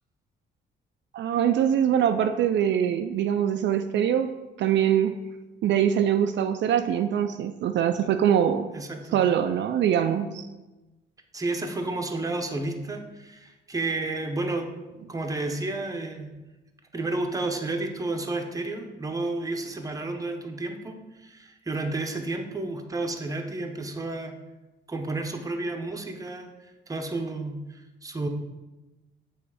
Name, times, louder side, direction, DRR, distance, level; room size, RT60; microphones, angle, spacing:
voice 1, 1.1-4.3 4.6-5.2 5.6-8.7 9.1-10.5, right 9 dB, 65° right, 7 dB, 0.4 m, -23 dB
voice 2, 8.7-9.2 11.3-14.7 15.1-16.3 16.9-24.4 24.9-28.3, right 2 dB, 15° right, 4 dB, 0.8 m, -31 dB
7.1 x 3.1 x 4.8 m, 1.1 s
cardioid pair, 90°, 20 cm